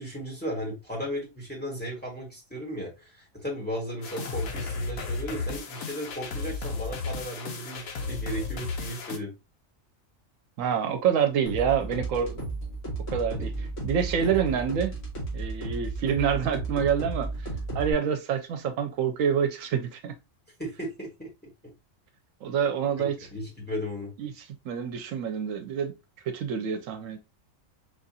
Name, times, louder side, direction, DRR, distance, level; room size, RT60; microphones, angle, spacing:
voice 1, 0.0-9.3 13.4-13.5 14.1-14.3 20.6-21.3 23.0-24.1, equal, 10° left, 1.3 m, -35 dB
sound 1, 4.0-9.2, left 4 dB, 85° left, 1.2 m, -34 dB
voice 2, 10.6-12.4 13.1-13.5 13.8-14.9 15.3-17.3 17.7-20.1 22.4-23.2 24.2-24.3 24.7-25.9 26.3-27.2, right 7 dB, 75° right, 1.0 m, -27 dB
sound 2, 11.5-17.9, right 2 dB, 65° left, 1.9 m, -33 dB
4.7 x 2.5 x 2.6 m
omnidirectional pair, 1.4 m